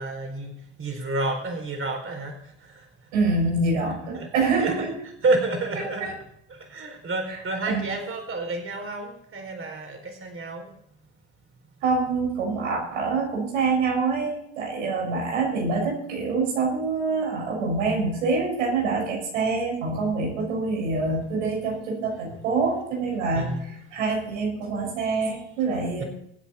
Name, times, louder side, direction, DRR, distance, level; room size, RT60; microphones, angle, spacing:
voice 1, 0.0-2.9 4.1-4.3 4.6-4.7 5.2-6.1 6.5-10.7 23.3-23.6 26.0-26.1, right 2 dB, 35° right, 3 dB, 4.4 m, -29 dB
voice 2, 3.1-5.0 6.0-6.1 7.3-7.4 7.7-7.9 11.8-26.0, right 3 dB, 85° right, 0 dB, 5.9 m, -26 dB
24.0 x 8.5 x 4.3 m, 0.75 s
hypercardioid pair, 75°, 37 cm